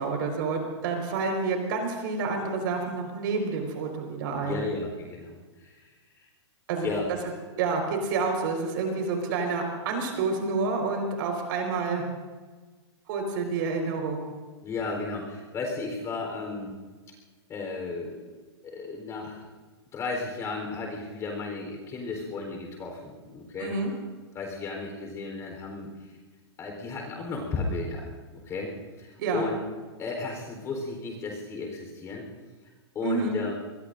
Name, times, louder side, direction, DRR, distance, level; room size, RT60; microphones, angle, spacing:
voice 1, 0.0-4.6 6.7-6.9 7.6-12.0 13.1-14.3 23.6-23.9 29.2-29.5 33.0-33.4, right 4 dB, 50° right, 3 dB, 4.6 m, -29 dB
voice 2, 4.4-6.3 6.8-7.1 14.6-16.7 17.5-18.2 18.6-19.4 19.9-23.7 24.3-26.1 26.6-28.7 29.0-29.6 30.0-32.3 32.9-33.5, left 3 dB, 20° left, 2 dB, 4.0 m, -34 dB
25.0 x 22.0 x 2.6 m, 1.4 s
hypercardioid pair, 150°, 15 cm